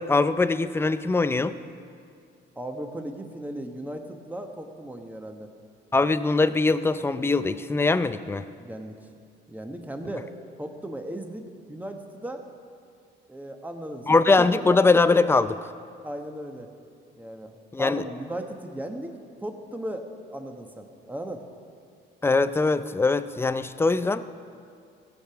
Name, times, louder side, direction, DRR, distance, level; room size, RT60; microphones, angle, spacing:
voice 1, 0.0-1.6 5.9-8.5 14.1-15.6 17.7-18.0 22.2-24.2, left 3 dB, 10° left, 13 dB, 0.4 m, -22 dB
voice 2, 2.6-5.5 8.6-9.0 9.5-10.3 10.6-12.4 13.3-14.7 16.0-16.7 17.2-21.4, right 1 dB, 10° right, 4 dB, 1.2 m, -36 dB
16.5 x 6.7 x 5.9 m, 2.3 s
cardioid pair, 90°, 20 cm